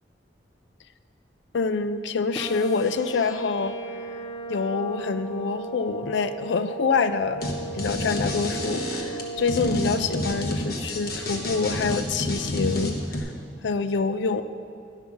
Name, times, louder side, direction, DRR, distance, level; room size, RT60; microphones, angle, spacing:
voice 1, 1.5-3.8 4.5-7.5 7.7-13.3 13.6-14.4, left 4 dB, 80° left, 11 dB, 0.4 m, -26 dB
sound 1, 2.3-10.4, right 2 dB, 20° left, 0.5 m, -36 dB
sound 2, 7.4-7.5 7.8-13.2, left 1 dB, 55° left, 1.1 m, -29 dB
11.0 x 5.6 x 5.9 m, 2.6 s
head